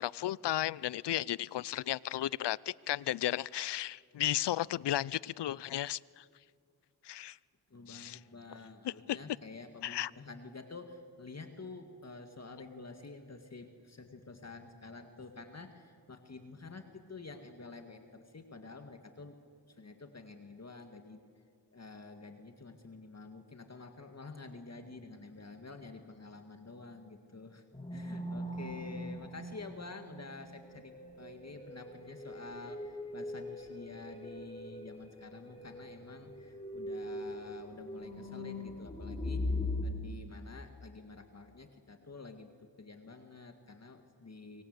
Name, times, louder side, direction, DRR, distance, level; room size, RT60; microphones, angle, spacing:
voice 1, 0.0-6.2 7.0-7.4 7.9-8.2 8.8-9.2 9.8-10.1, left 13 dB, 85° left, 0.6 m, -34 dB
voice 2, 7.7-19.4 19.7-21.2 21.7-27.6 27.9-39.5 39.8-42.5 42.8-44.6, left 3 dB, 40° left, 2.0 m, -49 dB
sound 1, 27.7-39.8, left 2 dB, 15° left, 3.9 m, -41 dB
25.5 x 24.0 x 8.1 m
cardioid pair, 70°, 40 cm